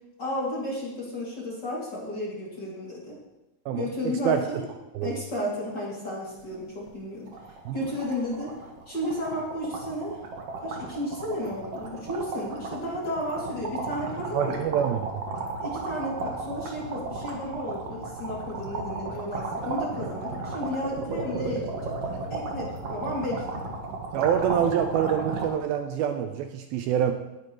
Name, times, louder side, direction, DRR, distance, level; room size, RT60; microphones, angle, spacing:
voice 1, 0.2-3.2 3.8-4.6 5.0-7.3 7.7-8.5 8.9-10.2 10.6-14.6 15.6-23.6, left 1 dB, 30° left, -5 dB, 2.7 m, -33 dB
voice 2, 3.7-4.5 4.9-5.1 7.7-7.8 14.3-15.2 24.1-27.1, right 9 dB, 80° right, 6 dB, 2.3 m, -26 dB
sound 1, 6.4-6.6 6.9-7.0 7.3-25.5, right 3 dB, 50° right, 2.0 m, -34 dB
18.5 x 10.5 x 3.1 m, 1.0 s
omnidirectional pair, 4.6 m